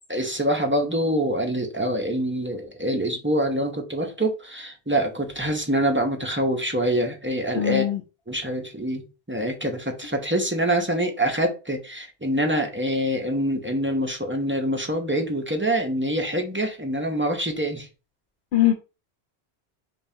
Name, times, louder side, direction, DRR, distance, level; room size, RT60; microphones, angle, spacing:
voice 1, 0.1-7.9 8.3-17.9, right 1 dB, 15° right, 2 dB, 0.5 m, -25 dB
voice 2, 7.5-8.0 18.5-18.7, left 12 dB, 75° left, 4 dB, 0.8 m, -21 dB
5.2 x 2.3 x 2.7 m, 0.32 s
omnidirectional pair, 1.1 m